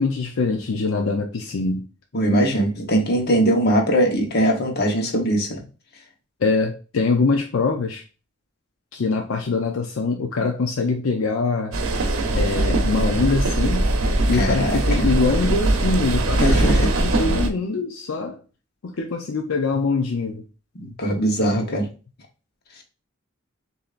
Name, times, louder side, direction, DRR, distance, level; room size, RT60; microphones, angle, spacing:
voice 1, 0.0-1.9 6.4-8.0 8.9-11.7 12.3-13.9 14.3-18.4 18.8-20.4 21.5-21.6, left 3 dB, 75° left, 0.5 m, -23 dB
voice 2, 2.1-5.6 14.3-15.1 16.4-16.9 20.8-21.9, right 1 dB, 50° left, 1.1 m, -21 dB
sound 1, 11.7-17.5, right 2 dB, 85° right, 0.8 m, -21 dB
6.6 x 2.8 x 2.5 m
head